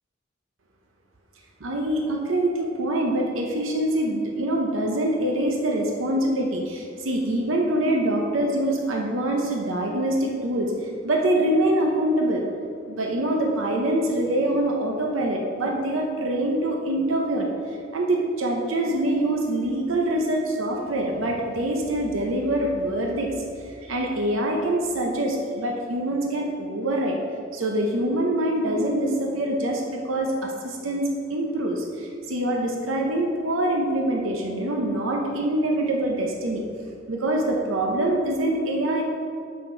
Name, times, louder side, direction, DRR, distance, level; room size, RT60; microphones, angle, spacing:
voice 1, 1.6-12.4 12.9-23.3 23.6-27.2 27.5-36.6 37.1-39.0, right 1 dB, 85° right, 1 dB, 0.8 m, -25 dB
6.4 x 5.9 x 4.5 m, 2.3 s
head